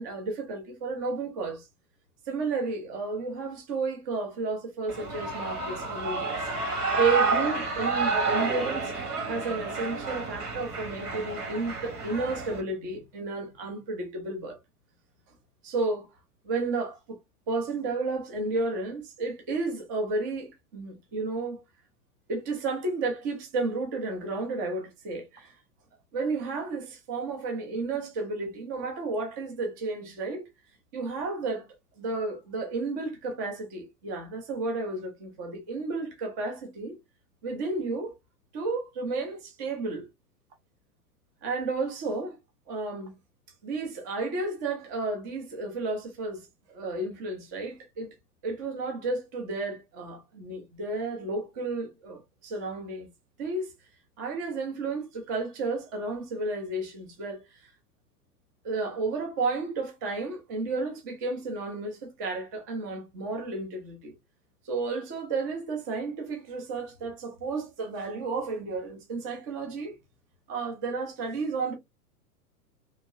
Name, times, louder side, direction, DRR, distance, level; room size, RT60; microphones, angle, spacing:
voice 1, 0.0-1.7 2.3-6.3 6.6-8.9 9.2-14.6 15.6-16.1 16.4-17.2 17.5-21.6 22.3-25.5 26.1-30.5 30.9-31.7 32.0-37.0 37.4-38.1 38.5-40.1 41.4-42.4 42.7-43.1 43.6-48.1 48.4-53.1 53.4-53.7 54.2-57.7 58.6-64.1 64.6-70.0 70.5-71.7, right 3 dB, 15° right, 0.3 m, -32 dB
Shout / Cheering, 4.9-12.6, right 3 dB, 70° right, 1.4 m, -30 dB
2.8 x 2.7 x 2.6 m
figure-of-eight pair, 100°, 47 cm